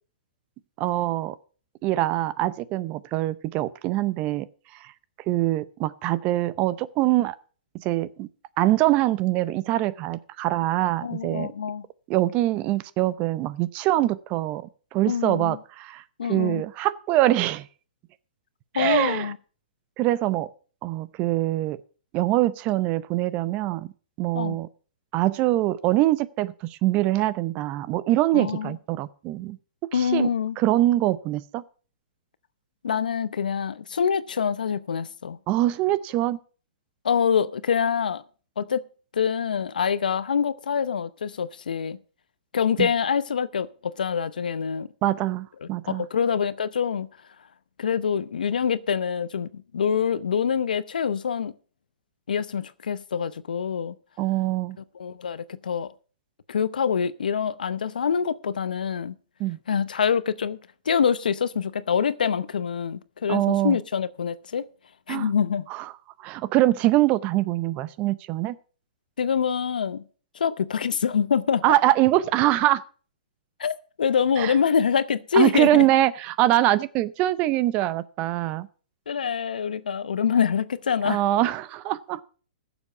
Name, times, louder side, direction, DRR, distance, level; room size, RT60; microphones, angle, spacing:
voice 1, 0.8-1.3 1.8-4.5 4.8-4.9 5.3-7.3 7.8-8.3 8.6-11.5 12.1-16.0 16.3-17.7 18.7-19.3 20.0-20.5 20.8-21.8 22.1-23.9 24.2-24.7 25.1-29.6 29.9-31.6 35.5-36.4 42.8-42.9 45.0-46.0 54.2-54.8 59.4-59.6 63.3-63.8 65.1-65.3 65.7-65.9 66.2-68.6 71.6-72.8 74.4-74.5 75.3-78.7 81.0-82.2, right 15 dB, 30° right, 0.6 m, -23 dB
voice 2, 11.0-11.9 15.1-15.6 16.2-16.6 18.7-19.4 24.3-24.6 28.3-28.8 29.9-30.6 32.8-35.4 37.0-38.2 38.6-38.8 39.1-42.0 42.5-44.9 45.6-47.1 47.8-51.5 52.3-53.9 54.9-55.9 56.5-59.1 59.7-60.6 60.9-64.7 65.1-65.7 69.2-70.0 70.3-71.6 73.6-75.9 79.1-81.2, left 7 dB, 85° left, 0.8 m, -25 dB
15.5 x 7.1 x 5.6 m
hypercardioid pair, 140°, 4 cm